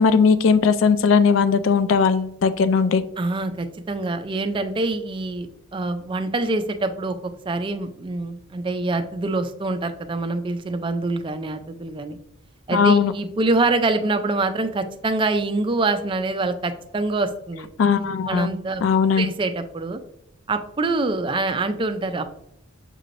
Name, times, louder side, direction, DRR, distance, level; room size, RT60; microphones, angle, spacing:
voice 1, 0.0-3.0 12.7-13.1 17.8-18.5 18.8-19.3, left 5 dB, 75° left, 12 dB, 0.3 m, -18 dB
voice 2, 3.2-7.2 7.4-12.2 12.7-17.7 18.3-18.8 19.2-20.0 20.5-22.3, right 2 dB, 25° right, 8 dB, 0.3 m, -25 dB
6.6 x 3.2 x 2.5 m, 0.77 s
head